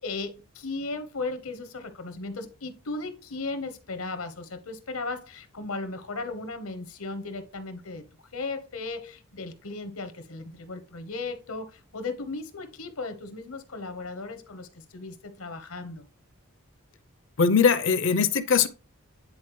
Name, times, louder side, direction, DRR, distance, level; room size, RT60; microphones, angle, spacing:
voice 1, 0.0-8.0 8.3-16.1, left 3 dB, 85° left, 1.1 m, -36 dB
voice 2, 17.4-18.7, left 6 dB, 60° left, 0.6 m, -21 dB
9.7 x 4.1 x 3.1 m
head